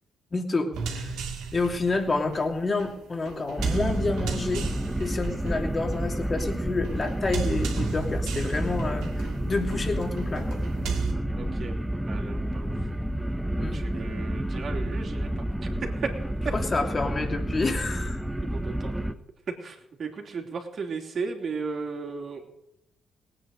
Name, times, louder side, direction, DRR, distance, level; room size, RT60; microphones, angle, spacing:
voice 1, 0.3-1.1 1.5-4.6 5.0-10.6 13.6-13.8 16.5-18.2, left 3 dB, 35° left, 3 dB, 2.9 m, -29 dB
sound 1, 0.7-11.1, right 5 dB, 85° right, 2.3 m, -35 dB
sound 2, 3.6-19.1, right 1 dB, 5° right, 1.1 m, -30 dB
voice 2, 11.4-11.8 12.1-12.7 13.6-16.1 16.4-16.5 18.4-19.2 19.6-22.5, right 4 dB, 55° right, 2 dB, 3.1 m, -35 dB
18.5 x 9.2 x 6.6 m, 0.81 s
supercardioid pair, 60°, 0 cm